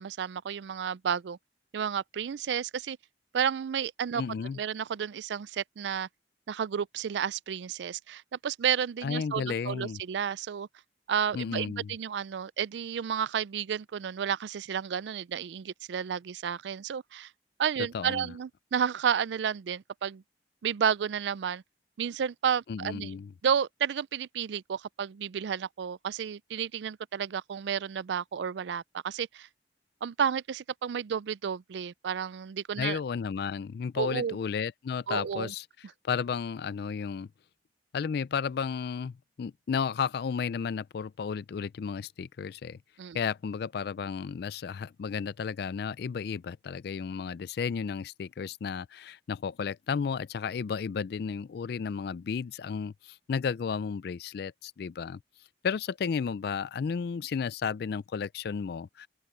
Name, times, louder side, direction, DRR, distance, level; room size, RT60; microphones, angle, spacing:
voice 1, 0.0-1.4 1.7-3.0 3.3-4.2 4.6-6.1 6.5-10.7 11.1-17.3 17.6-20.2 20.6-21.6 22.0-23.2 23.4-29.5 30.0-33.0 34.0-34.4 35.1-35.5 43.0-43.2, right 8 dB, 75° right, 0.4 m, -31 dB
voice 2, 4.1-4.6 9.0-10.0 11.3-11.9 17.9-18.3 22.7-23.3 32.8-35.7 36.1-37.3 37.9-42.8 43.1-55.2 55.6-59.1, left 6 dB, 65° left, 0.4 m, -33 dB
open air
head